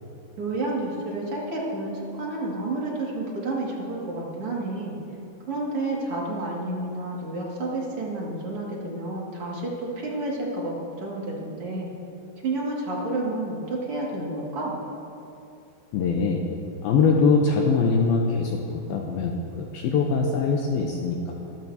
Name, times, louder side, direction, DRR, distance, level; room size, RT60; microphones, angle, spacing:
voice 1, 0.4-5.0 5.5-11.9 12.4-14.8, right 2 dB, 40° right, -4 dB, 2.6 m, -30 dB
voice 2, 15.9-16.5 16.8-21.3, left 4 dB, 75° left, 0 dB, 2.4 m, -23 dB
24.5 x 14.0 x 2.9 m, 2.7 s
omnidirectional pair, 5.0 m